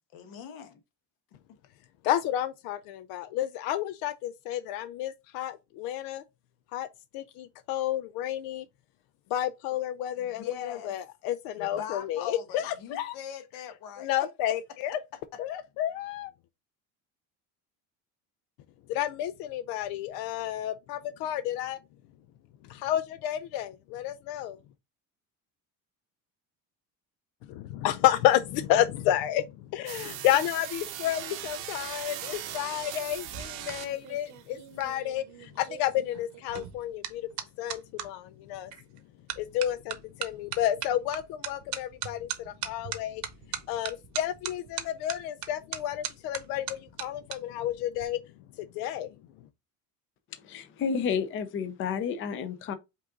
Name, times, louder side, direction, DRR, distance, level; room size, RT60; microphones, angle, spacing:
voice 1, 0.1-0.8 10.2-11.0 11.6-14.3 15.3-15.4, left 9 dB, 75° left, 1.1 m, -40 dB
voice 2, 2.0-6.2 6.7-6.9 7.1-8.6 9.3-13.1 14.0-15.0 15.4-16.3 18.9-21.8 22.7-24.6 27.8-29.5 29.7-37.3 37.6-38.7 39.4-43.2 43.7-48.2 48.6-49.1, left 12 dB, 90° left, 0.5 m, -30 dB
sound 1, 29.9-34.2, right 11 dB, 85° right, 1.0 m, -39 dB
sound 2, 33.1-38.1 38.7-39.0 39.3-47.4 47.7-48.0, right 10 dB, 55° right, 0.9 m, -39 dB
voice 3, 50.4-52.7, left 6 dB, 35° left, 0.6 m, -31 dB
5.3 x 2.6 x 3.7 m
cardioid pair, 140°, 35 cm